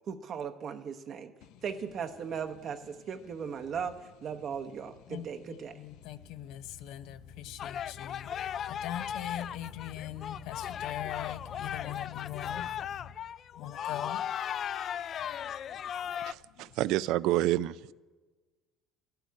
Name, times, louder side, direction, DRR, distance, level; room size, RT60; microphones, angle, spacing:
voice 1, 0.1-1.3 1.6-4.0 4.2-5.7, right 7 dB, 45° right, 0.9 m, -37 dB
voice 2, 5.1-12.7 13.6-14.2, left 11 dB, 75° left, 0.6 m, -41 dB
sound 1, 7.6-16.3, left 9 dB, 45° left, 0.3 m, -37 dB
voice 3, 16.2-17.9, right 15 dB, 75° right, 0.4 m, -29 dB
11.5 x 8.0 x 9.5 m
cardioid pair, 110°, 0 cm